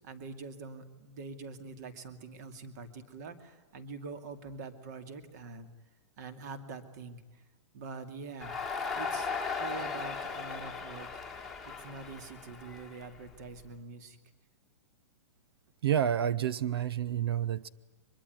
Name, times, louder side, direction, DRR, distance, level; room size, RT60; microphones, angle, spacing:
voice 1, 0.0-5.7 6.2-7.4 7.7-8.5 8.9-9.3 9.6-11.2 11.7-14.2, right 4 dB, 35° right, 10 dB, 2.4 m, -45 dB
Crowd, 8.4-13.6, left 5 dB, ahead, 1.9 m, -37 dB
voice 2, 15.8-17.7, right 9 dB, 55° right, 17 dB, 0.9 m, -29 dB
24.0 x 22.0 x 9.3 m, 1.2 s
hypercardioid pair, 180°, 15 cm